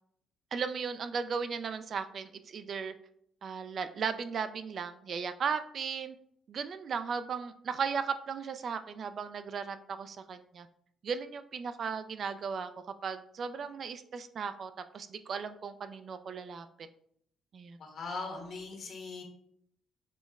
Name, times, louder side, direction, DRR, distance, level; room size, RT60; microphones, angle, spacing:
voice 1, 0.5-2.9 3.4-6.2 6.5-10.7 11.0-12.7 13.0-16.9 17.5-17.8, right 6 dB, 55° right, 10 dB, 0.3 m, -36 dB
voice 2, 17.8-19.2, left 3 dB, 60° left, 2 dB, 1.1 m, -40 dB
5.1 x 2.1 x 3.5 m, 0.69 s
cardioid pair, 90°, 0 cm